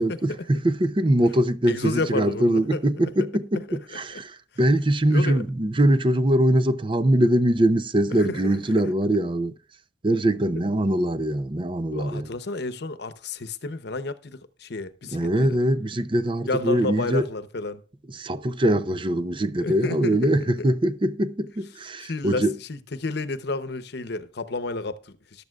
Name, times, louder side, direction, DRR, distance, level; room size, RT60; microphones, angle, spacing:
voice 1, 0.0-9.6 10.0-12.3 15.1-17.3 18.1-22.6, right 1 dB, 25° right, 0.6 m, -22 dB
voice 2, 1.7-2.8 3.7-3.8 4.1-4.2 5.1-5.4 8.1-8.5 11.9-15.6 16.5-17.8 19.6-20.5 22.0-25.4, left 3 dB, 60° left, 0.9 m, -31 dB
14.0 x 12.0 x 2.4 m
head